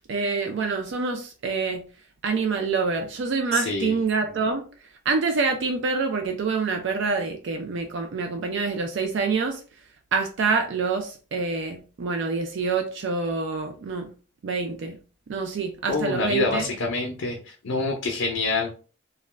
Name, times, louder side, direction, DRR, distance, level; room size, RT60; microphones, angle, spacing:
voice 1, 0.1-1.8 2.2-4.6 5.1-9.6 10.1-14.1 14.4-15.0 15.3-16.7, right 4 dB, 65° right, 4 dB, 0.4 m, -26 dB
voice 2, 3.5-4.0 15.9-18.7, left 3 dB, 70° left, 1 dB, 0.5 m, -26 dB
2.4 x 2.1 x 3.1 m, 0.37 s
head